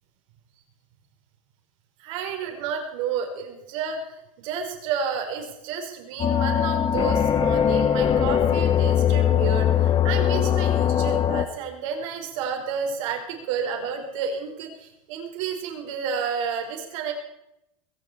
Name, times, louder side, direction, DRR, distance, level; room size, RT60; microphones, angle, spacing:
voice 1, 2.0-17.1, right 6 dB, 65° right, 3 dB, 4.9 m, -31 dB
sound 1, 6.2-11.5, left 9 dB, 25° left, 1.1 m, -21 dB
21.0 x 7.8 x 8.7 m, 0.85 s
supercardioid pair, 135°, 18 cm